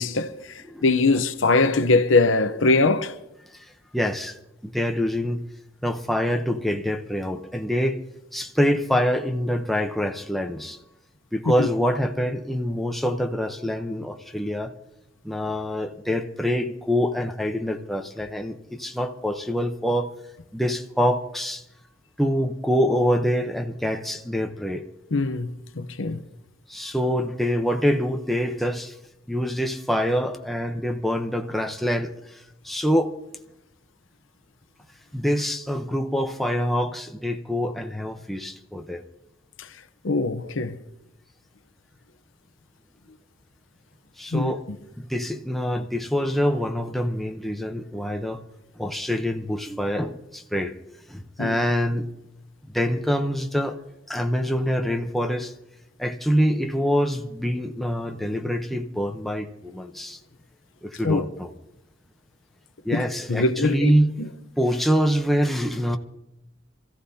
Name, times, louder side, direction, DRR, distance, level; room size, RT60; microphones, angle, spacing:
voice 1, 0.0-3.1 11.6-11.7 25.1-26.2 39.6-39.7 40.0-40.8 44.3-44.5 51.4-51.5 61.0-61.2 62.9-63.9 64.2-64.3, left 3 dB, 75° left, 0.8 m, -22 dB
voice 2, 3.9-4.4 4.6-5.4 5.8-8.0 8.3-10.8 11.3-14.7 15.2-20.1 20.5-21.6 22.2-24.9 26.7-29.0 29.3-32.1 32.6-33.1 35.1-39.0 44.2-44.6 45.0-48.4 48.8-50.7 51.1-52.1 52.7-53.8 54.1-55.5 56.0-60.2 60.8-61.5 62.8-64.1 64.6-66.0, equal, ahead, 0.8 m, -25 dB
27.0 x 15.0 x 2.8 m
head